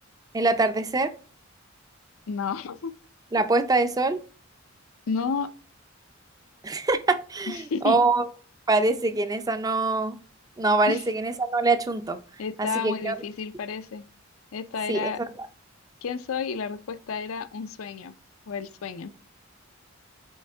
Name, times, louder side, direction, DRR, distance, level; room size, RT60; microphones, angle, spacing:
voice 1, 0.3-1.1 3.3-4.2 6.6-8.3 8.7-10.2 10.6-12.2 12.6-13.2 14.9-15.1 15.4-15.5, right 3 dB, 20° right, 0.4 m, -24 dB
voice 2, 2.3-2.9 5.1-5.5 7.5-8.0 10.9-11.0 12.4-14.1 14.5-15.2 16.0-18.1 18.5-19.1, left 5 dB, 80° left, 0.5 m, -31 dB
8.5 x 3.6 x 3.4 m
head